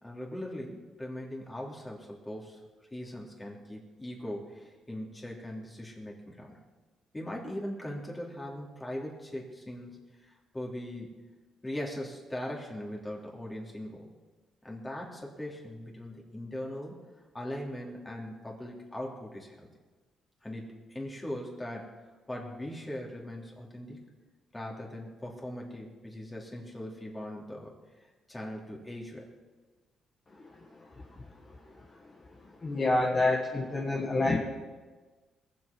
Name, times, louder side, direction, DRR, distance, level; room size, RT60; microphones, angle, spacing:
voice 1, 0.0-2.6 2.9-6.6 7.1-11.1 11.6-14.1 14.6-17.0 17.3-19.7 20.4-21.9 22.3-24.0 24.5-27.7 28.3-29.3, left 1 dB, 15° left, -2 dB, 3.3 m, -40 dB
voice 2, 32.6-34.4, left 2 dB, 30° left, -2 dB, 1.7 m, -27 dB
21.0 x 7.8 x 5.4 m, 1.3 s
cardioid pair, 90°, 0 cm